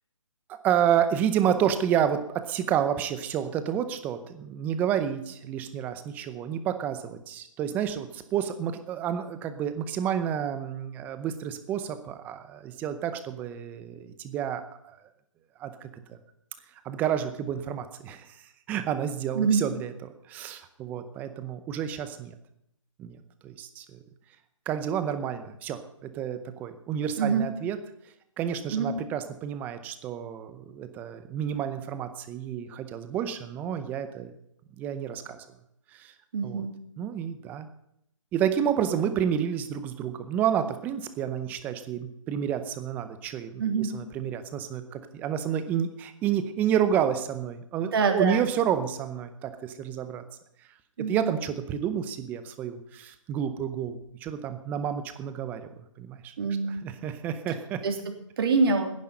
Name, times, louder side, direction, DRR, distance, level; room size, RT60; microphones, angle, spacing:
voice 1, 0.5-15.0 15.6-16.2 16.8-18.4 18.7-22.3 23.0-23.2 23.4-24.0 24.7-27.8 28.4-34.3 34.8-35.4 35.9-36.1 36.4-36.6 37.0-37.7 38.3-50.2 51.0-55.7 56.0-56.3 56.7-57.8, right 9 dB, 10° right, 10 dB, 0.7 m, -30 dB
voice 2, 36.3-36.7 43.6-43.9 47.8-48.5 51.0-51.3 56.4-56.8 57.8-58.9, right 5 dB, 45° right, 4 dB, 3.0 m, -25 dB
10.5 x 10.5 x 8.7 m, 0.76 s
hypercardioid pair, 160°, 17 cm